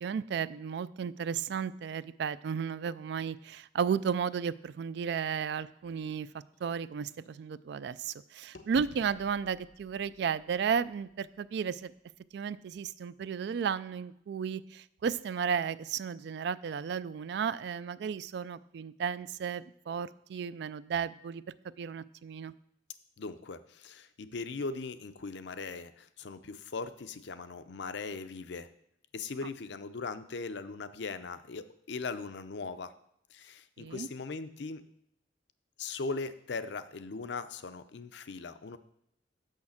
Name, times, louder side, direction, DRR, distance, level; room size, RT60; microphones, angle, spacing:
voice 1, 0.0-6.3 6.6-11.9 12.3-21.4 21.8-22.5 33.8-34.1, right 7 dB, 60° right, 17 dB, 0.3 m, -34 dB
sound 1, 5.8-8.2 8.5-12.5, left 2 dB, 80° left, 0.9 m, -57 dB
voice 2, 23.2-28.7 29.1-32.9 33.3-34.9 35.8-38.8, left 4 dB, 65° left, 11 dB, 0.5 m, -39 dB
6.4 x 5.7 x 7.2 m, 0.76 s
head